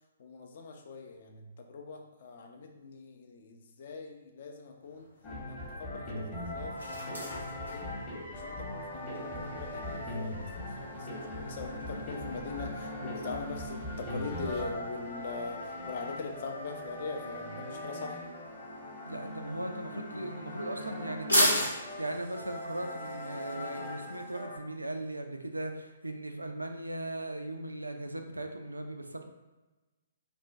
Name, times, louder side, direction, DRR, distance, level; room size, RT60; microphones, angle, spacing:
voice 1, 0.2-5.1 5.5-7.9 8.3-15.6 15.9-18.2, left 4 dB, 50° left, 2 dB, 0.4 m, -42 dB
sound 1, 4.8-24.4, equal, 85° left, 0.9 m, -39 dB
sound 2, 5.2-24.6, left 1 dB, 25° left, 0.8 m, -40 dB
voice 2, 19.1-29.3, right 1 dB, 85° right, 5 dB, 0.3 m, -38 dB
2.5 x 2.1 x 3.4 m, 1.1 s
figure-of-eight pair, 125°, 0 cm